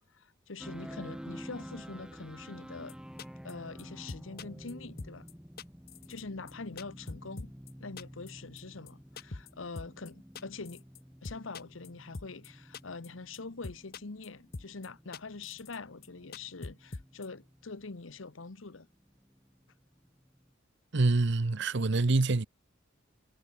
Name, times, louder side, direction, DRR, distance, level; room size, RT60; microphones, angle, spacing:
voice 1, 0.1-3.0 3.4-5.3 6.0-7.5 7.8-10.8 11.2-18.9, left 4 dB, 80° left, 1.1 m, -44 dB
sound 1, 0.6-20.5, equal, 5° right, 1.7 m, -50 dB
sound 2, 2.9-3.0 3.2-3.5 3.8-4.7 5.0-5.3 5.6-6.2 6.5-7.7 8.0-8.3 8.6-8.7 8.9-9.0 9.2-9.5 9.8-10.1 10.3-11.0 11.2-11.9 12.1-12.5 12.7-13.1 13.3-13.4 13.6-14.3 14.5-14.9 15.1-15.8 16.0-16.1 16.3-17.3, left 3 dB, 50° left, 0.9 m, -43 dB
voice 2, 20.9-22.5, right 3 dB, 60° right, 0.8 m, -26 dB
head